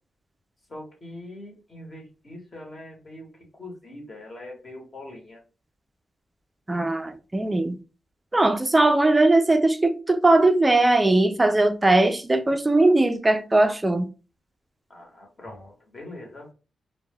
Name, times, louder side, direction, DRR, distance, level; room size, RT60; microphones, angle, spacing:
voice 1, 0.7-5.4 14.9-16.5, left 1 dB, 35° left, 0.9 m, -42 dB
voice 2, 6.7-7.8 8.3-14.1, right 2 dB, 15° right, 0.3 m, -20 dB
2.1 x 2.0 x 3.3 m
cardioid pair, 110°, 0 cm